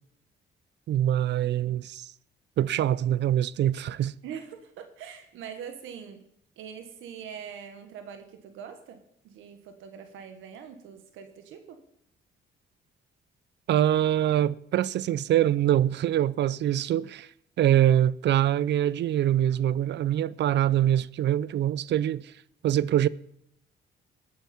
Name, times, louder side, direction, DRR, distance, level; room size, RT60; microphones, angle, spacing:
voice 1, 0.9-2.1 2.6-4.1 13.7-17.3 17.6-22.3 22.6-23.1, right 11 dB, 60° right, 0.4 m, -24 dB
voice 2, 4.2-6.3 6.6-9.0 9.2-11.8, right 8 dB, 90° right, 1.4 m, -43 dB
17.5 x 9.4 x 4.4 m
cardioid pair, 90°, 20 cm